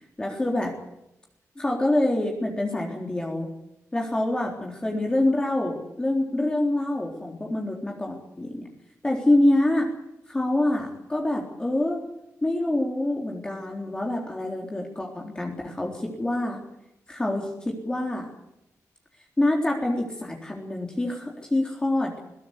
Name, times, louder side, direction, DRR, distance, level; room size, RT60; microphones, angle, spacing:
voice 1, 0.2-0.7 1.6-3.5 3.9-8.7 9.0-9.9 10.3-12.0 12.4-16.6 17.1-18.3 19.4-22.1, left 1 dB, 15° left, 0 dB, 3.8 m, -26 dB
21.5 x 18.0 x 8.4 m, 0.84 s
wide cardioid pair, 160°, 5 cm